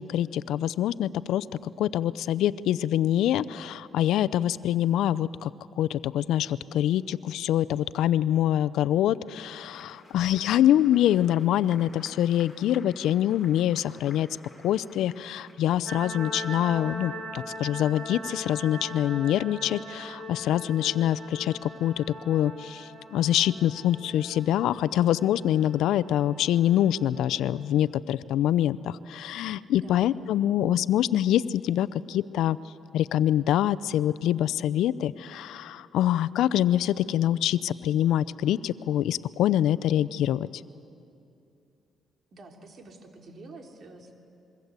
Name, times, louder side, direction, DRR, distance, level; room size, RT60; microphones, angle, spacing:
voice 1, 0.0-5.5 5.8-14.3 14.6-32.6 32.9-40.6, left 11 dB, 85° left, 18 dB, 0.6 m, -25 dB
Applause, 9.1-17.0, left 3 dB, 25° left, 4.7 m, -54 dB
voice 2, 10.3-10.9 29.8-30.4 42.3-44.1, right 2 dB, 50° right, 3 dB, 3.6 m, -48 dB
sound 1, 15.9-27.7, equal, 20° right, 5.5 m, -41 dB
27.5 x 23.0 x 8.2 m, 2.7 s
cardioid pair, 90°, 0 cm